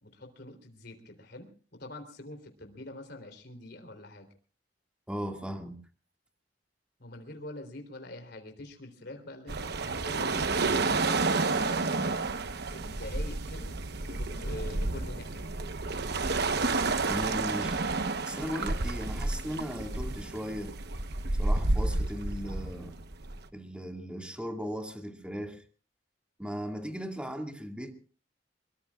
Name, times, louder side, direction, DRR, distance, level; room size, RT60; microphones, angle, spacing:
voice 1, 0.0-4.3 7.0-10.5 10.8-13.7 14.1-15.4, left 1 dB, 60° left, 3.6 m, -45 dB
voice 2, 5.1-5.8 17.1-17.8 18.3-20.8 21.4-23.0 23.5-25.6 26.4-27.9, equal, 5° right, 2.2 m, -37 dB
sound 1, 9.5-23.4, right 3 dB, 60° right, 1.1 m, -30 dB
23.5 x 23.5 x 2.4 m
head